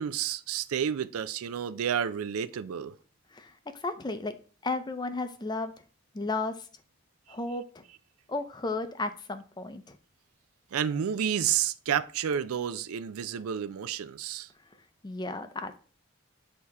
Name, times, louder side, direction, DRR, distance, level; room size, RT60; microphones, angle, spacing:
voice 1, 0.0-2.9 10.7-14.5, right 8 dB, 90° right, 0.4 m, -30 dB
voice 2, 3.3-4.4 4.6-5.7 6.1-6.7 7.3-7.8 8.3-10.0 15.0-15.8, left 3 dB, 20° left, 0.4 m, -34 dB
8.4 x 2.8 x 4.6 m
head